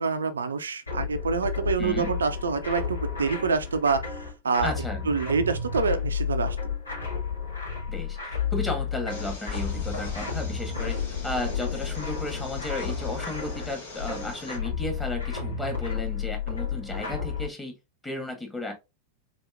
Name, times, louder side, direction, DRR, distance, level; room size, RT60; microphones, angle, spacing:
voice 1, 0.0-4.7 5.0-6.6, right 5 dB, 70° right, 0.5 m, -26 dB
sound 1, 0.9-17.5, left 6 dB, 80° left, 2.4 m, -32 dB
voice 2, 1.8-2.1 4.6-5.1 7.9-11.0 11.2-17.7 18.0-18.7, left 2 dB, 10° left, 1.8 m, -34 dB
sound 2, 9.1-14.6, left 4 dB, 60° left, 2.2 m, -40 dB
4.1 x 4.1 x 2.5 m
figure-of-eight pair, 90°, 0 cm